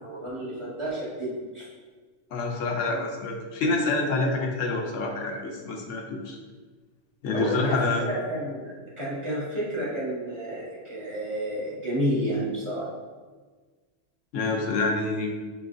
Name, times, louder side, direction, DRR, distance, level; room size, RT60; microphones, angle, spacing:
voice 1, 0.0-1.6 7.3-12.9, right 1 dB, 25° right, -9 dB, 1.4 m, -30 dB
voice 2, 2.3-6.4 7.2-8.0 14.3-15.3, left 3 dB, 90° left, 1 dB, 1.0 m, -27 dB
5.1 x 3.0 x 2.5 m, 1.4 s
omnidirectional pair, 1.2 m